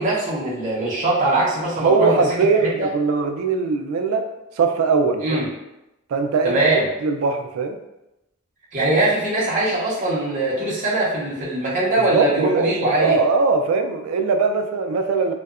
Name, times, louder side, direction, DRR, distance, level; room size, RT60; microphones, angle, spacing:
voice 1, 0.0-2.1 2.8-2.9 5.2-5.4 6.4-6.8 8.7-13.2, right 2 dB, 35° right, -6 dB, 0.6 m, -21 dB
voice 2, 1.8-4.3 4.6-5.4 6.1-6.6 7.0-7.8 12.0-15.3, right 4 dB, 90° right, 6 dB, 0.3 m, -20 dB
2.7 x 2.2 x 2.3 m, 0.93 s
head